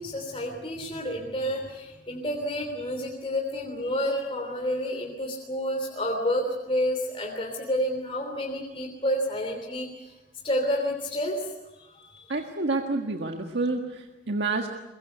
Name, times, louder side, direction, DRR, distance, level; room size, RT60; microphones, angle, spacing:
voice 1, 0.0-10.1 10.4-11.5 11.8-12.3, equal, 30° left, 1 dB, 3.2 m, -29 dB
voice 2, 12.3-14.7, right 3 dB, 75° right, 3 dB, 1.7 m, -28 dB
23.0 x 22.0 x 8.2 m, 1.0 s
head